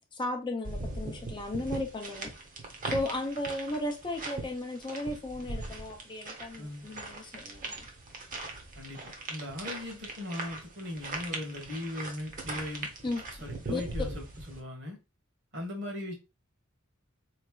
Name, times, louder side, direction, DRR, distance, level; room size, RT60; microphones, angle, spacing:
voice 1, 0.1-2.3 2.8-7.9 13.0-13.2 13.7-13.8, left 1 dB, 20° left, 0.5 m, -35 dB
sound 1, 0.6-14.6, right 2 dB, 40° right, 0.9 m, -40 dB
voice 2, 8.7-12.9 13.4-15.0 15.5-16.1, left 1 dB, 55° right, 1.5 m, -39 dB
4.0 x 3.2 x 2.3 m
head